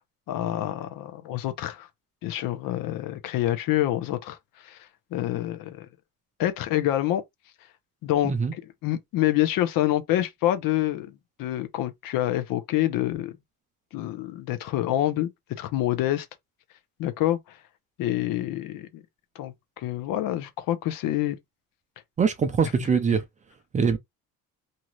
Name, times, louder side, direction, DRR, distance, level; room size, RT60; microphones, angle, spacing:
voice 1, 0.3-1.9 2.2-4.4 4.6-4.8 5.1-5.9 6.4-7.2 8.0-8.3 8.8-13.3 13.9-15.3 15.6-16.3 17.0-17.4 18.0-19.0 19.4-21.4, left 13 dB, 75° left, 0.7 m, -27 dB
voice 2, 22.2-23.2 23.7-24.0, right 5 dB, 25° right, 0.4 m, -23 dB
2.8 x 2.4 x 3.0 m
cardioid pair, 165°, 34 cm